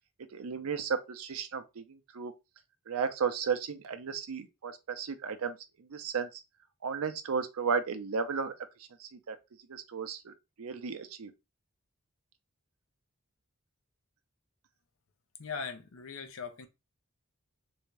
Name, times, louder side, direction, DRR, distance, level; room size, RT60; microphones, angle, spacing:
voice 1, 0.3-2.3 2.9-6.4 6.8-8.6 9.0-9.4 9.7-11.3, right 6 dB, 75° right, 0.5 m, -34 dB
voice 2, 15.4-16.7, left 5 dB, 60° left, 0.6 m, -40 dB
3.4 x 2.7 x 3.2 m
head